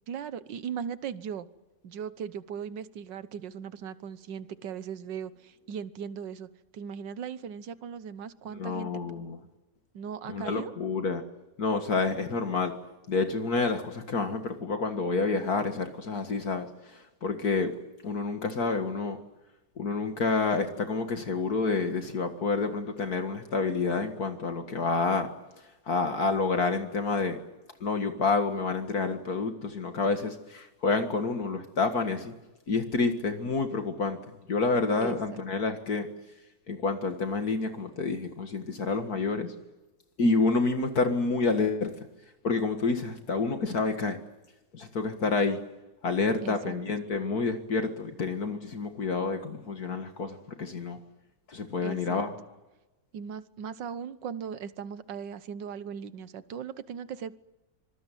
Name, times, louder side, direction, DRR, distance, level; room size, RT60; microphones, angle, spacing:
voice 1, 0.1-1.5 1.8-9.0 9.9-10.7 35.0-35.4 46.4-46.8 51.8-52.2 53.1-57.4, right 7 dB, 75° right, 14 dB, 1.7 m, -38 dB
voice 2, 8.6-9.4 10.3-11.2 11.6-12.7 13.1-17.8 18.0-19.2 19.8-25.3 25.9-27.4 27.8-32.3 32.7-34.2 34.5-36.1 36.7-39.5 40.2-41.9 42.4-44.2 44.7-45.6 46.0-51.0 51.5-52.3, left 3 dB, 55° left, 6 dB, 2.3 m, -28 dB
25.5 x 20.5 x 9.2 m, 1.0 s
omnidirectional pair, 2.0 m